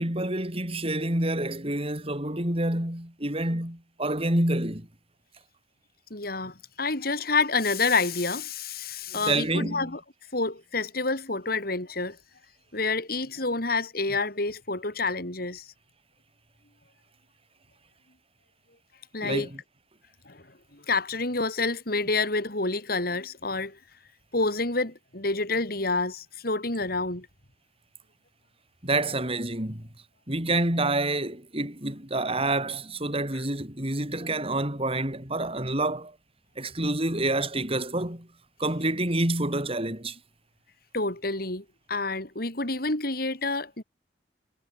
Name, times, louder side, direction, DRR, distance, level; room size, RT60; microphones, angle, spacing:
voice 1, 0.0-4.9 9.1-10.0 19.2-19.5 28.8-29.9 30.3-36.1 36.6-38.3 38.6-40.2, right 2 dB, 35° right, 6.7 m, -28 dB
voice 2, 6.1-10.0 10.3-12.2 12.7-15.7 19.1-19.5 20.3-20.4 20.7-23.8 24.3-27.3 40.9-43.8, left 3 dB, 55° left, 5.8 m, -28 dB
head